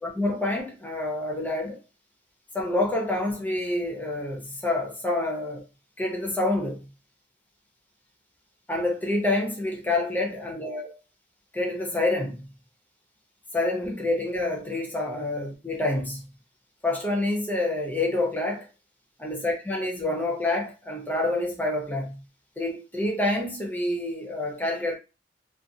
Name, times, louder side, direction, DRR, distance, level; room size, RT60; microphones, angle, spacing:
voice 1, 0.0-1.8 2.5-5.6 6.0-6.9 8.7-10.9 11.5-12.5 13.5-16.3 16.8-18.7 19.2-22.2 22.6-24.9, left 2 dB, 10° left, 0.6 m, -27 dB
2.5 x 2.3 x 2.6 m
head